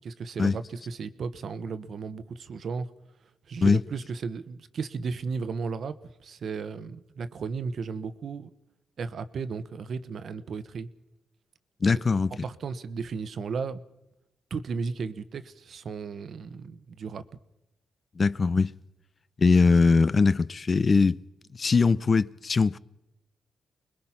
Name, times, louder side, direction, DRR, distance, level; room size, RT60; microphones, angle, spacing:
voice 1, 0.0-2.9 3.5-8.5 9.0-10.9 11.8-12.0 12.4-13.8 14.5-17.2, right 5 dB, 65° right, 1.2 m, -35 dB
voice 2, 11.8-12.4 18.2-18.7 19.4-21.2 21.5-22.8, left 4 dB, 40° left, 0.7 m, -21 dB
25.0 x 21.0 x 5.9 m
cardioid pair, 70°, 0 cm